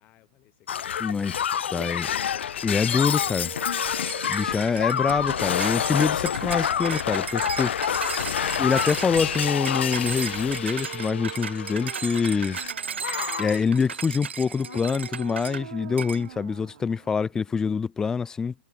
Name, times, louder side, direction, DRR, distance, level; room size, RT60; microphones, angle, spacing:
voice 1, 0.0-3.8, left 16 dB, 25° left, 5.0 m, -57 dB
Shatter, 0.7-12.7 13.0-13.6 14.6-14.8, left 9 dB, 85° left, 0.4 m, -28 dB
voice 2, 1.0-1.3 1.7-2.1 2.6-3.5 4.3-7.7 8.6-12.6 13.4-18.5, left 5 dB, 10° left, 0.5 m, -25 dB
sound 1, 2.7-17.6, right 11 dB, 65° right, 4.1 m, -43 dB
sound 2, 4.1-15.6 16.0-16.2, right 7 dB, 90° right, 2.5 m, -35 dB
hypercardioid pair, 145°, 6 cm